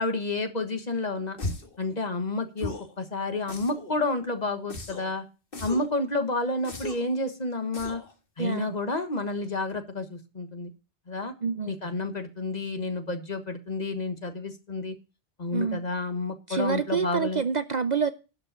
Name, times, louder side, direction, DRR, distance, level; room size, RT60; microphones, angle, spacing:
voice 1, 0.0-1.4 1.8-5.3 5.6-8.0 8.4-10.7 11.1-11.3 11.7-14.9 15.4-17.4, left 2 dB, 40° left, 1.5 m, -30 dB
sound 1, 1.4-1.8 2.6-2.9 3.5-4.0 4.7-5.1 5.5-5.9 6.6-7.1 7.7-8.1, left 2 dB, 55° left, 1.9 m, -36 dB
voice 2, 8.4-8.7 11.4-11.7 15.5-15.8 16.5-18.1, right 6 dB, 50° right, 0.6 m, -27 dB
11.5 x 5.4 x 6.8 m
omnidirectional pair, 1.1 m